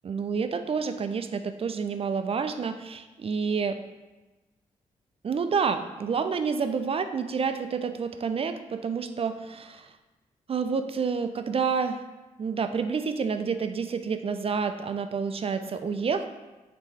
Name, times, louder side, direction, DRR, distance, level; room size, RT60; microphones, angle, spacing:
voice 1, 0.0-3.8 5.2-9.9 10.5-12.0 12.4-16.3, right 5 dB, 40° right, 9 dB, 0.4 m, -29 dB
3.5 x 2.9 x 4.5 m, 1.1 s
supercardioid pair, 50°, 15 cm